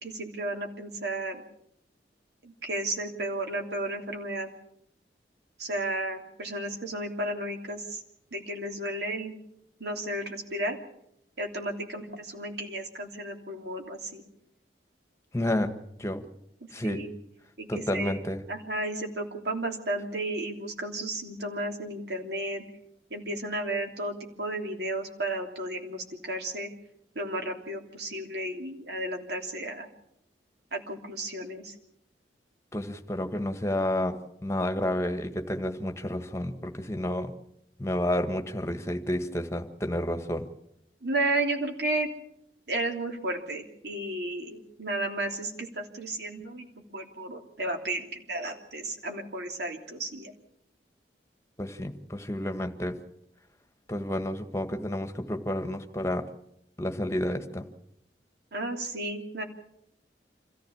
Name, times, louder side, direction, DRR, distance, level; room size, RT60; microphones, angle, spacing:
voice 1, 0.0-1.4 2.4-4.5 5.6-8.0 8.3-9.3 9.8-10.8 11.4-14.2 16.8-17.1 17.6-18.2 18.5-22.6 23.1-26.7 27.1-29.9 30.7-31.7 41.0-42.1 42.7-46.6 46.9-50.3 58.5-59.4, right 1 dB, 70° right, 3 dB, 3.2 m, -33 dB
voice 2, 15.3-15.7 16.0-16.2 16.7-17.0 17.7-18.4 32.7-37.3 37.8-40.5 51.6-53.0 53.9-56.3 56.8-57.7, left 1 dB, 15° left, 6 dB, 1.6 m, -30 dB
26.5 x 14.5 x 7.2 m, 0.77 s
head